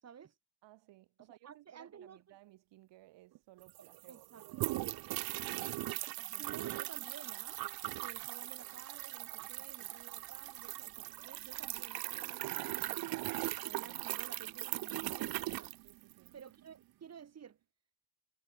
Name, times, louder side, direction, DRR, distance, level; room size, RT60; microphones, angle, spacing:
voice 1, 0.0-0.4 1.4-2.2 3.8-4.7 5.3-6.0 6.4-7.6 8.0-13.1 13.6-15.7 16.3-17.6, right 8 dB, 40° right, 2.2 m, -54 dB
voice 2, 0.6-6.7 9.4-9.5 9.8-9.9 15.8-16.3, right 17 dB, 85° right, 1.1 m, -61 dB
sound 1, 3.4-3.5 3.6-16.4, right 17 dB, 60° right, 0.5 m, -40 dB
cardioid pair, 155°, 42 cm